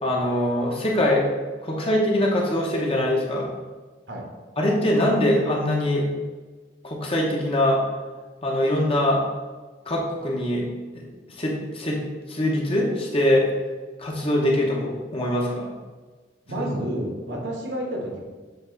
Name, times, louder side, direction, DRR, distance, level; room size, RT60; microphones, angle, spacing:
voice 1, 0.0-1.2 1.6-3.5 4.6-6.0 6.8-7.8 8.4-9.2 9.9-10.6 10.9-11.1 11.4-12.0 12.3-13.4 14.0-15.7 16.6-16.7, left 1 dB, 30° left, -2 dB, 1.0 m, -23 dB
voice 2, 16.5-18.2, right 1 dB, 75° right, -1 dB, 1.4 m, -30 dB
7.9 x 3.1 x 3.9 m, 1.3 s
head